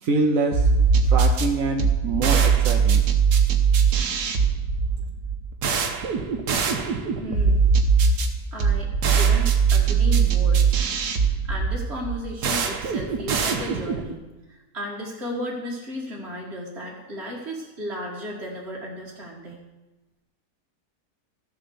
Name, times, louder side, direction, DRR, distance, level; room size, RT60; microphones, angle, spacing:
voice 1, 0.0-0.7 1.1-3.0, right 3 dB, 55° right, 1 dB, 1.3 m, -25 dB
sound 1, 0.5-14.1, right 6 dB, 70° right, 1.6 m, -21 dB
voice 2, 7.2-7.7 8.5-10.7 11.2-19.6, left 1 dB, 40° right, -5 dB, 2.1 m, -34 dB
13.5 x 7.4 x 7.0 m, 1.1 s
omnidirectional pair, 1.8 m